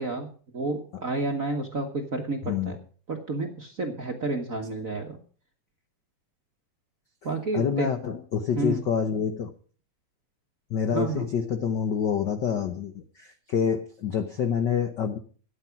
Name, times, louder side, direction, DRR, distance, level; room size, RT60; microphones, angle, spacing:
voice 1, 0.0-2.8 3.1-5.2 7.2-7.9 8.5-8.8 10.9-11.3, right 2 dB, 45° right, 2 dB, 1.1 m, -30 dB
voice 2, 7.5-9.5 10.7-15.2, left 7 dB, 70° left, 7 dB, 1.0 m, -27 dB
13.0 x 9.6 x 5.9 m, 0.43 s
omnidirectional pair, 3.3 m